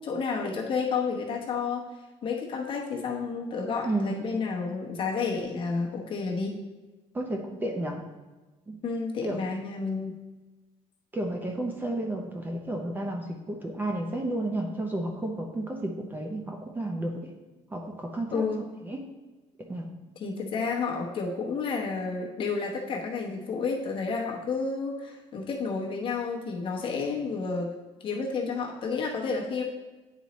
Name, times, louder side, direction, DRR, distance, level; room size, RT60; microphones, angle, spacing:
voice 1, 0.0-1.8 2.2-6.6 8.8-10.2 18.3-18.7 20.2-27.7 28.0-29.6, left 4 dB, 40° left, -2 dB, 1.0 m, -30 dB
voice 2, 3.8-4.2 7.1-8.0 8.7-8.8 9.2-9.4 11.1-17.3 17.7-18.5 18.8-19.0 19.6-19.9, right 1 dB, 15° right, 1 dB, 0.6 m, -32 dB
9.9 x 4.1 x 3.1 m, 1.2 s
cardioid pair, 160°, 13 cm